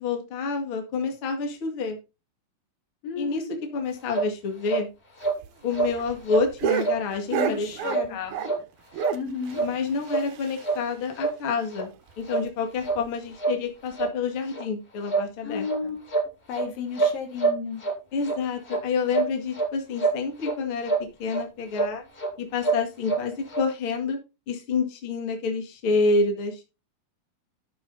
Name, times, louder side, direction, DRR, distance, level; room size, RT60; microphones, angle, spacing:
voice 1, 0.0-2.0 3.2-4.9 5.6-8.5 9.6-11.9 12.2-15.9 18.1-20.9 21.2-22.0 22.4-24.2 24.5-26.6, left 4 dB, 40° left, 3 dB, 2.5 m, -28 dB
voice 2, 3.0-3.6 7.3-8.2 9.1-9.6 15.4-16.0 16.5-17.8, left 5 dB, 65° left, 4 dB, 3.2 m, -33 dB
sound 1, 4.1-4.3 4.6-4.8 5.2-5.4 5.7-5.9 6.3-6.5 6.8-7.0 7.4-7.5 7.9-8.1 8.4-8.6 9.0-9.2 9.5-9.7 10.1-10.2 10.6-10.8 11.2-11.3 11.7-11.8 12.3-12.4 12.8-13.0 13.4-13.6 13.9-14.1 14.5-14.6 15.1-15.3 15.6-15.8 16.1-16.7 17.0-17.9 18.2-18.4 18.7-18.8 19.1-19.7 20.0-20.5 20.9-21.0 21.3-21.4 21.7-21.9 22.2-22.3 22.6-23.2 23.5-23.6, right 4 dB, 20° left, 1.9 m, -26 dB
sound 2, 5.2-8.6 8.9-10.9 11.2-11.3 11.6-11.7 12.1-12.2 12.8-13.1 13.9-14.0, right 10 dB, 90° right, 1.6 m, -32 dB
13.5 x 6.0 x 4.0 m, 0.28 s
omnidirectional pair, 4.5 m